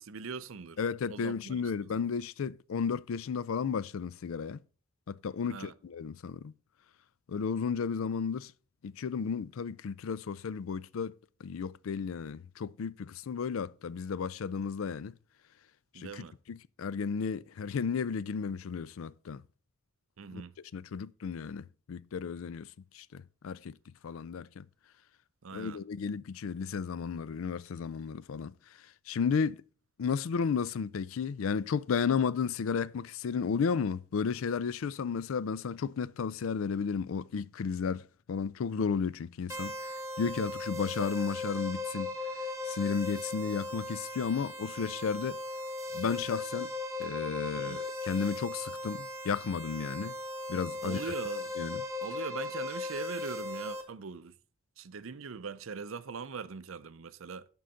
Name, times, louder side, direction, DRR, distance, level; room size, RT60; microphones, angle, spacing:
voice 1, 0.0-0.8 1.1-1.9 5.5-5.7 15.9-16.4 20.2-20.5 25.4-25.8 47.5-47.8 50.8-51.5 52.0-54.3 54.8-57.5, right 5 dB, 75° right, 0.6 m, -41 dB
voice 2, 0.8-4.6 5.1-6.5 7.3-8.5 8.8-11.1 11.4-15.1 16.0-19.4 20.3-20.4 20.7-22.7 22.9-23.7 24.0-24.7 25.5-28.5 29.1-29.6 30.0-38.0 38.3-39.7 40.2-42.1 42.7-45.4 45.9-46.7 47.0-50.2 50.5-51.0 51.6-51.8, left 6 dB, 80° left, 0.4 m, -33 dB
sound 1, 39.5-53.8, left 2 dB, 15° right, 1.6 m, -38 dB
11.5 x 3.9 x 5.7 m
head